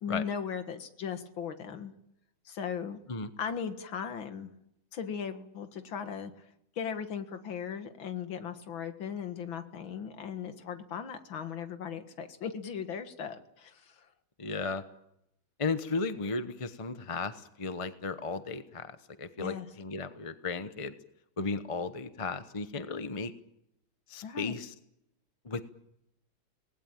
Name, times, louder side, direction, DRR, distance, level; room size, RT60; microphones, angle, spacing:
voice 1, 0.0-1.9 2.5-3.0 3.4-4.5 4.9-6.3 6.8-14.1 19.4-19.7 24.2-24.5, left 7 dB, 70° left, 8 dB, 2.4 m, -38 dB
voice 2, 14.4-14.8 15.6-20.9 21.4-23.3 24.1-24.7 25.4-25.6, left 4 dB, 30° left, 10 dB, 0.6 m, -35 dB
26.5 x 19.5 x 9.0 m, 0.82 s
omnidirectional pair, 2.3 m